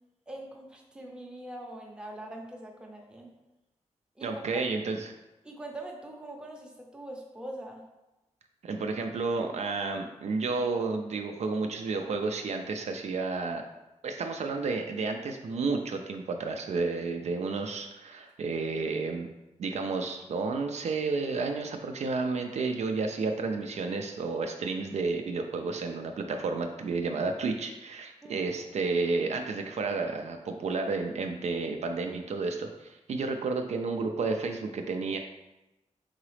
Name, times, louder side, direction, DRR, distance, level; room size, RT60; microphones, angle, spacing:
voice 1, 0.3-3.3 4.2-4.4 5.4-7.8 28.2-28.5, right 1 dB, 5° right, 0 dB, 0.6 m, -43 dB
voice 2, 4.2-5.1 8.6-13.6 14.0-19.3 19.6-35.2, right 4 dB, 65° right, 4 dB, 0.4 m, -31 dB
3.9 x 3.8 x 3.2 m, 1.0 s
wide cardioid pair, 145°, 12 cm